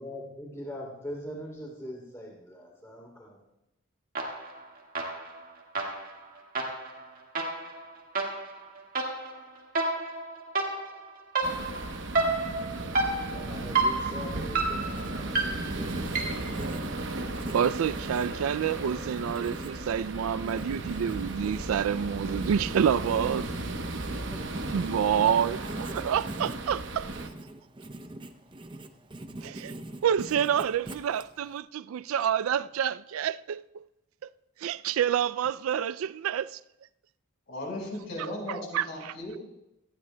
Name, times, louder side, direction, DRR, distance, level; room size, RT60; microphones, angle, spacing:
voice 1, 0.0-3.4 13.2-16.3 24.3-24.5, equal, 15° left, 3.0 m, -42 dB
sound 1, 4.2-4.6 5.0-16.6, right 3 dB, 45° right, 1.8 m, -31 dB
sound 2, 11.4-27.3, right 2 dB, 60° right, 0.9 m, -36 dB
Writing, 14.4-31.6, right 1 dB, 25° right, 0.6 m, -43 dB
voice 2, 17.5-23.5 24.7-27.1 29.4-29.7 30.0-33.8 34.6-36.6 38.7-39.1, right 8 dB, 85° right, 0.3 m, -28 dB
voice 3, 37.5-39.4, left 1 dB, 55° left, 4.8 m, -36 dB
18.5 x 15.5 x 2.2 m
head